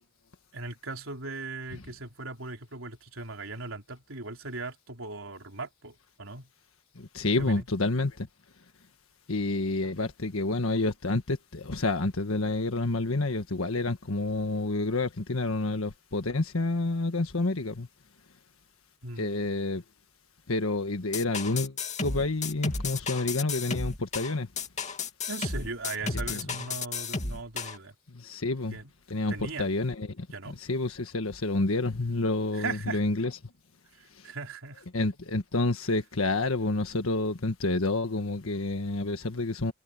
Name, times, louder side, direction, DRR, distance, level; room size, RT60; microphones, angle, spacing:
voice 1, 0.5-6.5 7.4-7.7 19.0-19.4 25.3-28.0 28.7-28.9 29.3-29.8 30.3-30.6 32.5-33.0 33.9-34.9, right 3 dB, 75° right, 3.7 m, -38 dB
voice 2, 7.0-8.3 9.3-17.9 19.2-19.8 20.5-21.7 22.0-24.5 26.3-26.4 28.1-28.8 29.1-33.3 34.9-39.7, left 2 dB, 90° left, 1.5 m, -29 dB
sound 1, 21.1-27.8, left 4 dB, 35° left, 2.5 m, -33 dB
head